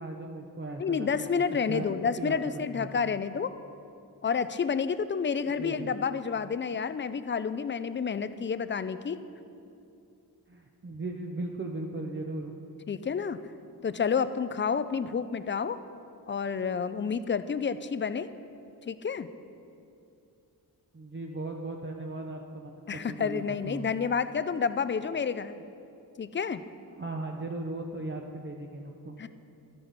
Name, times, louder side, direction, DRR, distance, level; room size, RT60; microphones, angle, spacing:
voice 1, 0.0-3.1 5.6-5.9 10.5-12.5 20.9-23.9 27.0-29.2, right 2 dB, 30° right, 0 dB, 0.7 m, -38 dB
voice 2, 0.8-3.5 4.2-9.2 12.9-13.4 13.8-15.8 16.3-18.3 18.9-19.3 22.9-25.6 26.2-26.6 29.2-29.3, left 6 dB, 30° left, 13 dB, 0.4 m, -29 dB
13.0 x 10.5 x 4.0 m, 2.6 s
wide cardioid pair, 105°, 39 cm